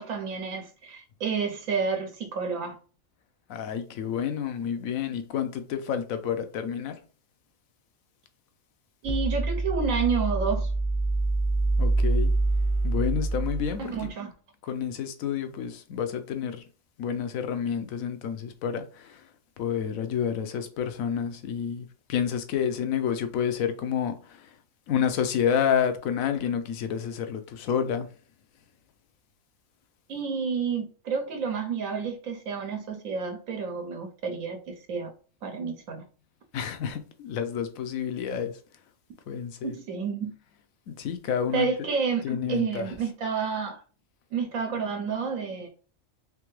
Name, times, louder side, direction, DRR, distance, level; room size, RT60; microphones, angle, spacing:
voice 1, 0.0-2.8 9.0-10.7 13.8-14.3 30.1-35.1 35.4-36.0 39.6-40.3 41.5-42.2 42.5-43.8 44.3-45.7, right 5 dB, 85° right, 1.1 m, -30 dB
voice 2, 3.5-7.0 11.8-12.3 12.8-13.9 14.7-16.6 17.0-19.2 19.6-24.2 24.9-28.1 36.5-38.5 39.3-39.7 40.9-41.7 42.2-42.9, left 8 dB, 90° left, 1.1 m, -29 dB
sound 1, 9.0-14.1, right 2 dB, 35° right, 0.5 m, -26 dB
3.7 x 3.3 x 3.1 m
omnidirectional pair, 1.4 m